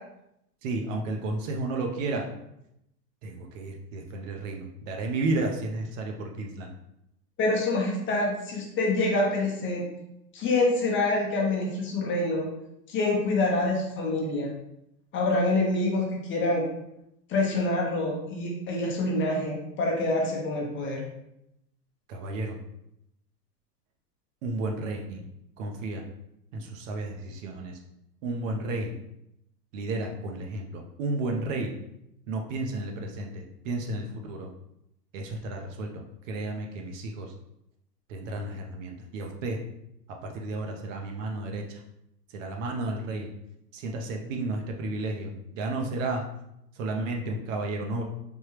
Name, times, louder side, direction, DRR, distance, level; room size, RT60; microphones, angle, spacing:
voice 1, 0.6-2.3 3.2-6.7 22.1-22.6 24.4-25.2 25.6-26.1 26.5-27.7 28.2-28.9 29.7-31.7 32.3-34.5 35.1-35.9 36.3-37.3 38.1-39.6 40.2-41.8 42.3-43.3 43.7-46.2 46.8-48.0, right 2 dB, 50° right, 2 dB, 0.6 m, -32 dB
voice 2, 7.4-9.8 10.3-12.5 12.9-14.5 15.1-16.6 17.3-21.1, left 2 dB, 25° left, -1 dB, 0.7 m, -26 dB
3.4 x 2.2 x 3.0 m, 0.82 s
hypercardioid pair, 105°, 49 cm